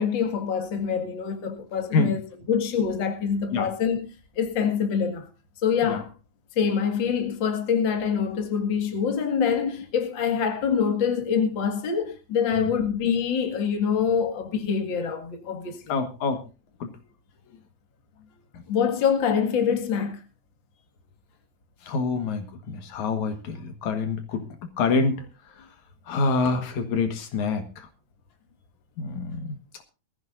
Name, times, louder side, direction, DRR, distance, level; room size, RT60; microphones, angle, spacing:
voice 1, 0.0-4.1 4.4-5.3 5.6-6.1 6.6-16.0 18.7-20.2, left 7 dB, 40° left, 2.3 m, -25 dB
voice 2, 15.9-16.4 16.8-16.9 21.9-24.4 24.8-25.2 26.1-27.7 29.0-29.6, left 4 dB, 70° left, 2.9 m, -26 dB
21.5 x 14.5 x 2.6 m
omnidirectional pair, 3.5 m